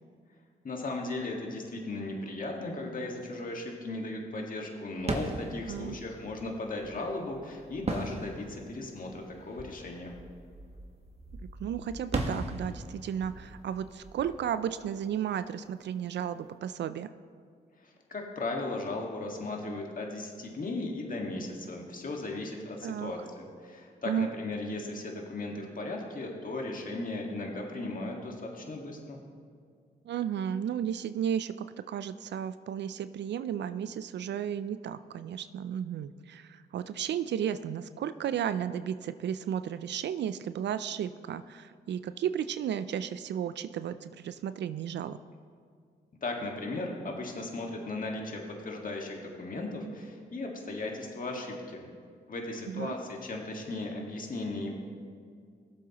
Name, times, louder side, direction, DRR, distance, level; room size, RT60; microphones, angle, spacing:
voice 1, 0.6-10.1 17.8-29.2 46.2-51.9 52.3-54.8, left 2 dB, 45° left, 1 dB, 1.7 m, -36 dB
sound 1, 5.0-15.6, right 2 dB, 35° right, 1.3 m, -39 dB
voice 2, 11.6-17.1 22.8-23.1 24.1-24.3 30.1-31.5 31.9-45.2 52.7-53.0, right 9 dB, 70° right, 12 dB, 0.4 m, -33 dB
18.0 x 7.4 x 3.0 m, 2.2 s
cardioid pair, 60°, 19 cm